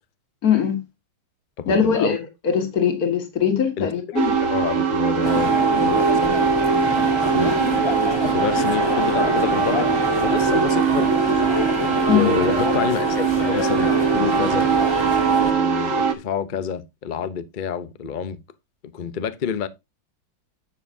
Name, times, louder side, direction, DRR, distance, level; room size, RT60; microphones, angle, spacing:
voice 1, 0.4-0.8 1.7-2.2 2.4-4.3 12.1-12.3, left 7 dB, 50° left, 2.4 m, -20 dB
voice 2, 1.6-2.2 3.8-6.0 7.3-7.5 8.2-9.9 10.1-11.4 12.1-14.7 15.4-18.4 18.8-19.7, left 7 dB, 70° left, 0.4 m, -28 dB
sound 1, 4.2-16.1, right 5 dB, 45° right, 1.5 m, -21 dB
sound 2, 5.2-15.5, left 2 dB, 20° left, 0.7 m, -27 dB
10.5 x 7.2 x 2.7 m
omnidirectional pair, 2.1 m